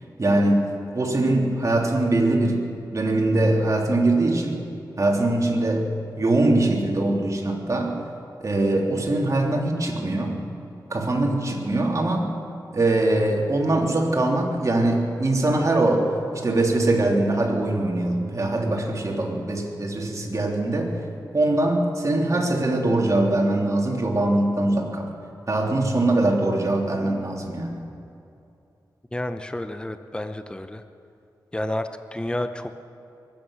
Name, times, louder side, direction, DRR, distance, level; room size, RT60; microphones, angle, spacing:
voice 1, 0.2-4.7 5.0-8.0 8.4-10.4 10.9-12.3 12.7-21.0 21.3-25.1 25.5-27.8, right 2 dB, 40° right, 0 dB, 3.1 m, -22 dB
voice 2, 29.1-30.8 31.5-32.8, left 1 dB, 10° left, 9 dB, 0.8 m, -30 dB
22.5 x 9.6 x 6.4 m, 2.7 s
cardioid pair, 50°, 8 cm